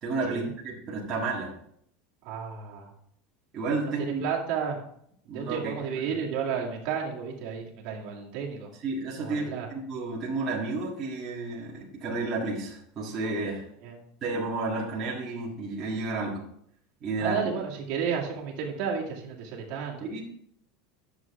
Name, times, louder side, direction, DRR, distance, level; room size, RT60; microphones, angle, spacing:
voice 1, 0.0-1.5 3.5-4.2 5.3-5.8 8.8-13.7 14.2-16.5 17.0-17.4 20.0-20.2, right 3 dB, 20° right, -6 dB, 1.7 m, -31 dB
voice 2, 2.2-2.9 3.8-4.8 5.3-8.7 9.2-9.7 13.8-14.0 17.2-20.1, right 7 dB, 45° right, -2 dB, 2.1 m, -32 dB
11.0 x 7.1 x 3.6 m, 0.69 s
supercardioid pair, 180°, 0 cm